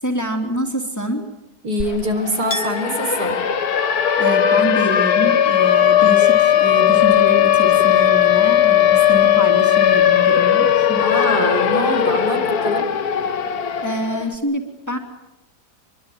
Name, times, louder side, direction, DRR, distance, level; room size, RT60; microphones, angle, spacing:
voice 1, 0.0-1.2 4.2-11.0 13.8-15.0, equal, 10° left, 3 dB, 3.0 m, -26 dB
voice 2, 1.6-3.3 11.0-12.9, equal, 75° right, 5 dB, 4.7 m, -24 dB
Siren, 1.8-1.9 2.2-14.2, left 10 dB, 65° left, 1.8 m, -17 dB
Chink clink, 2.5-8.0 8.3-9.2, left 1 dB, 45° left, 2.3 m, -38 dB
25.5 x 23.0 x 9.2 m, 1.0 s
omnidirectional pair, 1.8 m